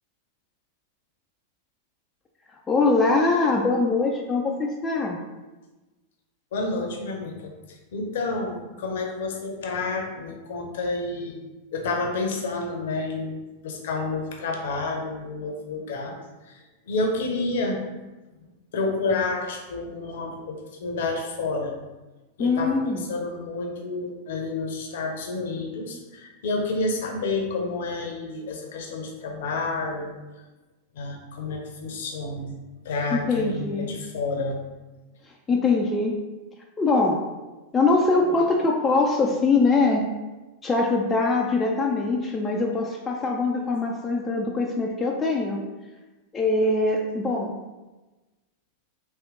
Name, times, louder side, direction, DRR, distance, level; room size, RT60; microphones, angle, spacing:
voice 1, 2.7-5.2 22.4-23.0 33.1-33.9 35.5-36.2 36.8-37.2 37.7-40.1 40.6-45.6 46.3-47.6, left 3 dB, 20° left, 0 dB, 0.4 m, -23 dB
voice 2, 6.5-11.4 11.7-16.1 16.5-17.8 18.7-21.7 22.4-30.2 30.9-32.6 32.8-34.6, left 3 dB, 55° left, 1 dB, 0.7 m, -29 dB
3.6 x 2.7 x 3.7 m, 1.1 s
figure-of-eight pair, 90°, 0 cm